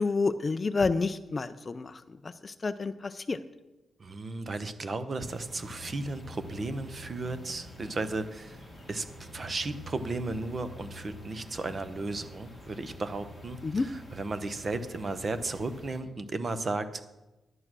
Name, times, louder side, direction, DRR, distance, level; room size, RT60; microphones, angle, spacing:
voice 1, 0.0-1.9 2.2-2.9 3.3-3.4 13.6-13.9, left 4 dB, 25° left, 12 dB, 0.3 m, -29 dB
voice 2, 4.0-8.6 8.9-17.0, right 3 dB, 30° right, 11 dB, 0.7 m, -35 dB
sound 1, 5.2-16.0, left 1 dB, 5° right, 2.1 m, -47 dB
11.0 x 8.7 x 6.1 m, 1.1 s
wide cardioid pair, 170°, 0 cm